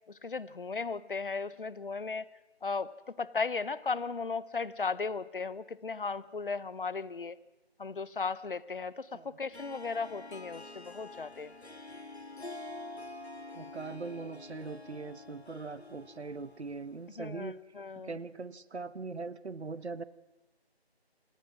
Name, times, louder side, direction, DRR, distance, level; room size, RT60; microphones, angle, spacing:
voice 1, 0.1-2.3 2.6-2.9 3.2-7.4 7.8-11.5 17.2-18.1, left 4 dB, 55° left, 19 dB, 0.9 m, -36 dB
Harp, 9.5-17.2, left 2 dB, 75° left, 2.5 m, -47 dB
voice 2, 13.5-17.6 18.0-20.0, right 4 dB, 85° right, 17 dB, 1.2 m, -41 dB
27.5 x 16.5 x 6.1 m, 1.0 s
figure-of-eight pair, 175°, 32 cm